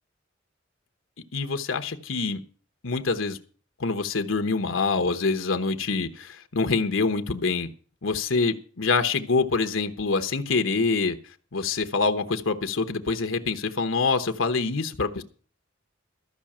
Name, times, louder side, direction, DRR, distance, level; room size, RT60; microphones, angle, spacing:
voice 1, 1.3-2.4 2.8-3.4 3.8-7.7 8.0-11.2 11.5-15.2, left 4 dB, 90° left, 8 dB, 1.0 m, -25 dB
13.5 x 5.7 x 8.7 m, 0.42 s
head